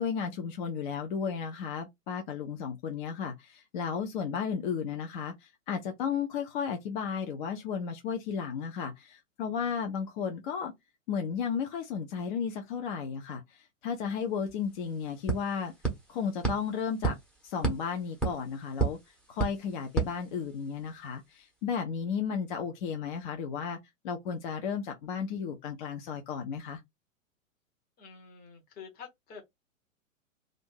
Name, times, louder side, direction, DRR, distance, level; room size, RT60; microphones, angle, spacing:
voice 1, 0.0-10.7 11.1-15.7 16.1-17.2 17.4-19.0 19.3-23.8 24.0-26.8, left 6 dB, 40° left, 0.6 m, -34 dB
sound 1, 14.2-14.3 14.5-20.9, right 4 dB, ahead, 0.9 m, -34 dB
voice 2, 28.0-29.4, left 6 dB, 20° left, 1.0 m, -48 dB
2.6 x 2.5 x 3.6 m
figure-of-eight pair, 105°, 40 cm